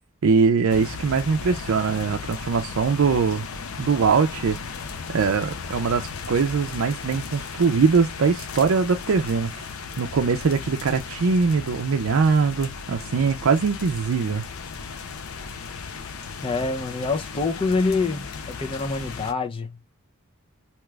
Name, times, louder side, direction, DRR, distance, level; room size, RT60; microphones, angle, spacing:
voice 1, 0.2-3.4 3.8-4.6 5.1-9.5 10.0-14.4, right 5 dB, 65° right, 0.4 m, -22 dB
sound 1, 0.7-19.3, left 5 dB, 70° left, 0.5 m, -36 dB
voice 2, 16.4-19.9, left 3 dB, 25° left, 0.5 m, -26 dB
2.9 x 2.3 x 3.2 m
head